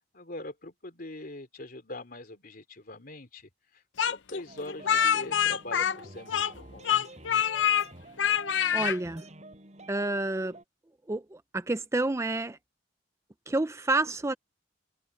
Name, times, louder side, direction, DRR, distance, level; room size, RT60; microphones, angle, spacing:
voice 1, 0.1-7.0, left 1 dB, 50° left, 3.6 m, -43 dB
Speech, 4.0-6.6 6.8-7.9 8.2-9.0, left 9 dB, 80° left, 0.6 m, -26 dB
sound 1, 4.5-10.6, right 1 dB, 40° right, 6.4 m, -49 dB
voice 2, 8.7-9.3 9.9-10.6 11.1-12.6 13.5-14.3, right 2 dB, 15° right, 0.5 m, -29 dB
head